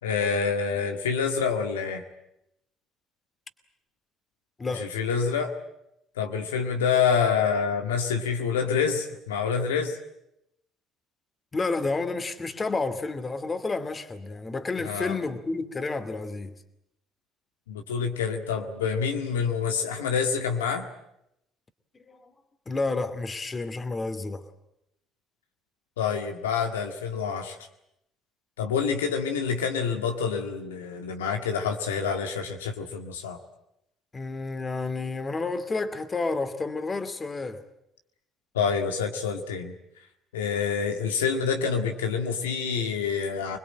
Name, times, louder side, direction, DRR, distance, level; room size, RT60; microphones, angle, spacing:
voice 1, 0.0-2.0 4.8-5.5 6.2-10.0 14.8-15.2 17.7-20.9 26.0-27.6 28.6-33.4 38.5-39.7 40.3-43.6, left 6 dB, 90° left, 1.9 m, -27 dB
voice 2, 11.5-16.6 22.1-22.3 22.7-24.5 34.1-37.6, left 3 dB, 30° left, 2.5 m, -30 dB
25.5 x 21.0 x 8.9 m
hypercardioid pair, 60°, 0 cm